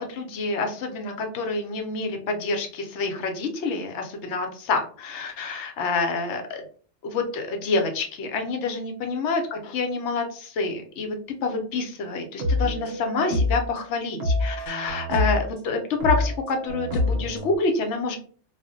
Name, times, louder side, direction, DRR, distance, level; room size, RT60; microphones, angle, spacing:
voice 1, 0.0-6.6 7.0-11.2 11.4-18.2, left 3 dB, 70° left, 4 dB, 0.8 m, -27 dB
sound 1, 12.4-13.7 14.2-15.5 16.0-17.6, left 2 dB, 65° right, 0.9 m, -26 dB
2.3 x 2.1 x 2.5 m, 0.44 s
omnidirectional pair, 1.3 m